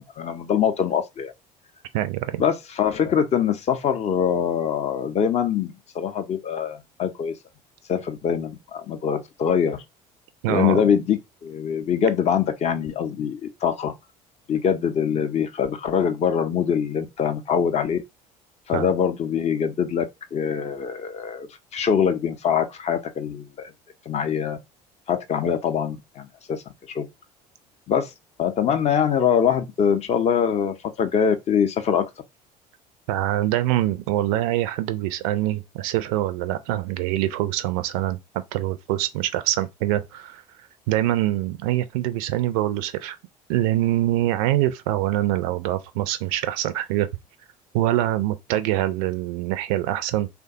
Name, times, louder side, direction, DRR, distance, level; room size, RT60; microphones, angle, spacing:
voice 1, 0.0-1.3 2.4-7.3 7.9-9.8 10.5-13.9 14.5-18.0 18.7-20.0 20.3-23.7 24.1-24.6 25.1-27.1 27.9-28.1 28.4-32.1, left 7 dB, 30° left, 0.5 m, -23 dB
voice 2, 1.9-2.4 10.4-10.8 18.7-18.9 33.1-38.2 38.5-40.4 40.9-43.2 43.5-47.1 47.7-50.3, right 14 dB, 55° right, 0.4 m, -24 dB
3.3 x 2.2 x 2.7 m
figure-of-eight pair, 60°, 21 cm